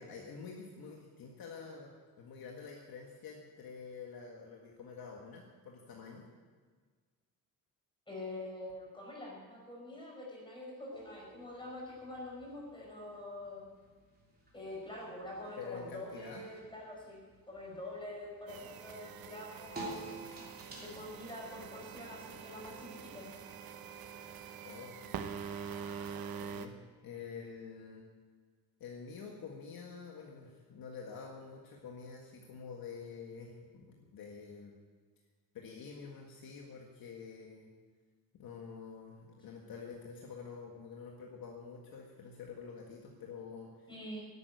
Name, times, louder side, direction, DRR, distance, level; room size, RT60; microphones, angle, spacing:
voice 1, 0.0-1.9 2.2-6.2 15.6-16.4 24.6-25.3 26.4-26.8 27.0-28.0 28.8-34.7 35.5-37.7 38.3-43.9, left 5 dB, 75° left, 0 dB, 1.8 m, -48 dB
voice 2, 8.1-13.6 14.5-17.2 17.5-20.2 20.8-23.3 43.9-44.3, left 1 dB, 15° left, -3 dB, 5.1 m, -45 dB
sound 1, 10.9-24.5, right 2 dB, 25° right, 3.1 m, -53 dB
sound 2, 18.5-26.7, right 7 dB, 75° right, 1.0 m, -45 dB
11.5 x 9.3 x 9.4 m, 1.5 s
cardioid pair, 140°, 36 cm